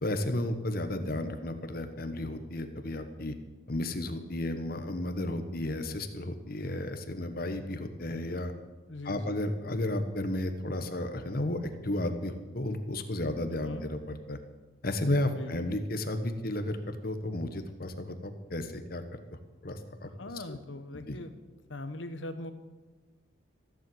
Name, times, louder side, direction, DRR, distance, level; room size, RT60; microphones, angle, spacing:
voice 1, 0.0-3.3 3.7-8.5 9.0-14.4 14.8-19.0 19.6-20.1 20.5-20.6 21.1-21.2, left 1 dB, 50° left, 8 dB, 1.2 m, -33 dB
voice 2, 8.9-9.3 13.5-13.8 15.4-15.5 20.2-21.3 21.7-22.5, left 2 dB, 75° left, 10 dB, 1.1 m, -40 dB
15.0 x 7.6 x 7.9 m, 1.2 s
head